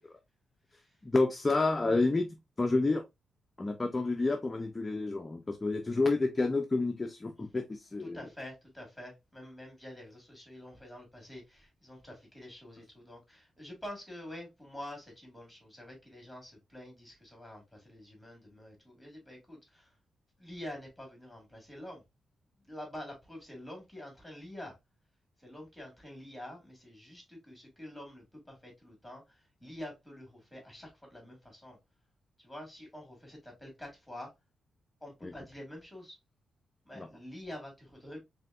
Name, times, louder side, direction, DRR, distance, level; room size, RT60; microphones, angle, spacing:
voice 1, 1.0-2.3 2.6-3.0 3.6-8.2 35.2-35.3 37.0-37.1, left 3 dB, 20° left, 0.4 m, -29 dB
voice 2, 8.0-19.9 20.4-22.0 22.7-24.7 25.4-31.8 32.4-34.3 35.0-36.2 36.9-38.2, left 1 dB, ahead, 2.1 m, -47 dB
4.4 x 3.5 x 2.4 m
wide cardioid pair, 145°, 0 cm